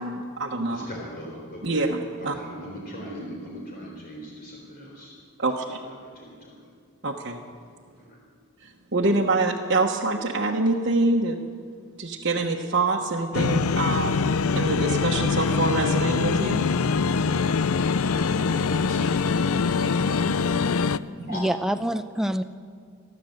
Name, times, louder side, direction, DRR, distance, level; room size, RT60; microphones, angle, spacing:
voice 1, 0.0-0.9 1.6-2.4 5.4-5.8 7.0-7.4 8.9-11.4 12.0-14.3 14.5-16.7, right 2 dB, 55° right, -2 dB, 1.3 m, -25 dB
voice 2, 0.7-1.8 2.2-5.1 6.2-6.5 8.1-8.2 18.9-19.0 21.2-21.4, equal, 45° left, -2 dB, 3.9 m, -39 dB
sound 1, 13.3-21.0, left 5 dB, 85° left, 0.5 m, -23 dB
voice 3, 21.3-22.4, equal, ahead, 9 dB, 0.6 m, -27 dB
29.0 x 11.5 x 7.9 m, 2.1 s
head